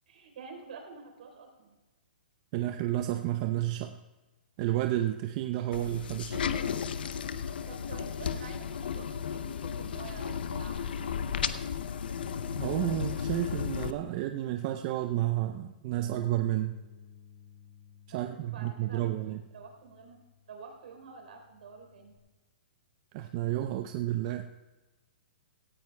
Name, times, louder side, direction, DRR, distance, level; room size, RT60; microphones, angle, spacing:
voice 1, 0.1-1.7 7.7-11.5 18.1-20.2 20.5-22.2, right 4 dB, 70° right, 3 dB, 3.7 m, -49 dB
voice 2, 2.5-4.0 4.6-6.4 12.5-16.8 18.1-19.4 23.1-24.5, right 14 dB, 40° right, 6 dB, 0.5 m, -31 dB
sound 1, 5.7-13.9, left 7 dB, 75° left, 0.7 m, -34 dB
Bass guitar, 15.9-22.2, left 6 dB, 15° right, 2.4 m, -54 dB
17.5 x 14.5 x 2.2 m, 1.2 s
hypercardioid pair, 145°, 5 cm